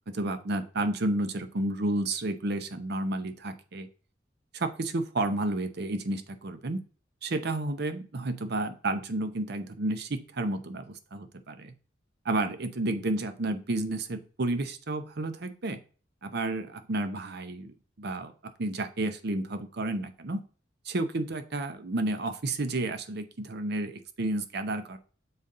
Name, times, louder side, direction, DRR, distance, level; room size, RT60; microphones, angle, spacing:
voice 1, 0.1-3.9 4.5-6.8 7.2-11.7 12.2-15.8 16.2-18.3 18.6-20.4 20.8-25.0, right 2 dB, 60° right, 9 dB, 0.7 m, -31 dB
7.0 x 4.1 x 3.7 m, 0.38 s
head